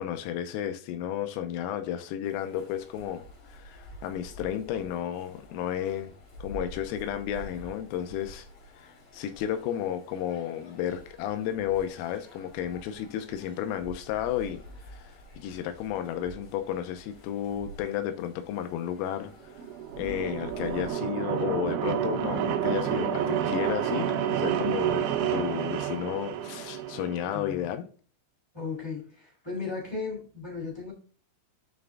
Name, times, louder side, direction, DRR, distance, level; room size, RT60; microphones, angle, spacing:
voice 1, 0.0-6.1 6.4-8.5 8.8-14.6 14.9-19.3 20.0-27.9, left 10 dB, 90° left, 3.4 m, -32 dB
sound 1, 2.2-20.9, equal, 65° left, 1.4 m, -49 dB
sound 2, 19.5-27.4, right 9 dB, 75° right, 2.9 m, -29 dB
voice 2, 27.3-27.6 28.5-30.9, left 4 dB, 20° left, 0.6 m, -36 dB
9.0 x 3.5 x 3.6 m
omnidirectional pair, 5.9 m